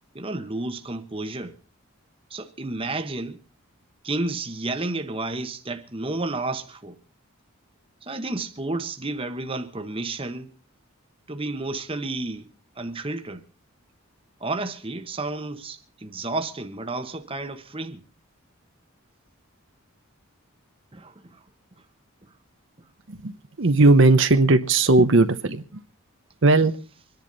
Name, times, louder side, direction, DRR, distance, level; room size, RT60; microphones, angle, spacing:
voice 1, 0.1-1.5 2.3-3.4 4.0-7.0 8.0-10.5 11.3-12.5 12.8-13.4 14.4-18.0 20.9-21.4, right 2 dB, 25° right, 1.1 m, -31 dB
voice 2, 23.6-25.8 26.4-26.7, right 2 dB, 60° right, 0.9 m, -17 dB
25.5 x 10.5 x 4.0 m
head